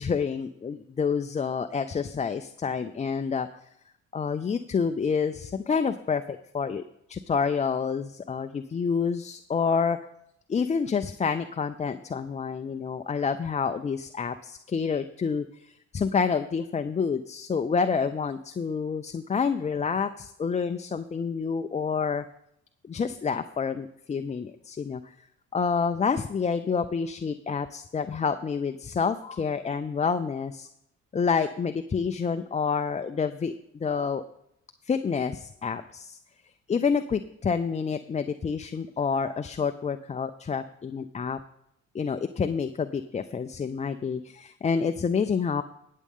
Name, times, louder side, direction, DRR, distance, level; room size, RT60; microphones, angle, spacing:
voice 1, 0.0-3.5 4.1-6.8 7.1-10.0 10.5-22.3 22.9-25.1 25.5-30.7 31.1-34.2 34.8-36.2 36.7-41.4 41.9-45.6, left 5 dB, 25° left, 9 dB, 0.4 m, -28 dB
18.5 x 7.5 x 3.7 m, 0.76 s
cardioid pair, 90°, 30 cm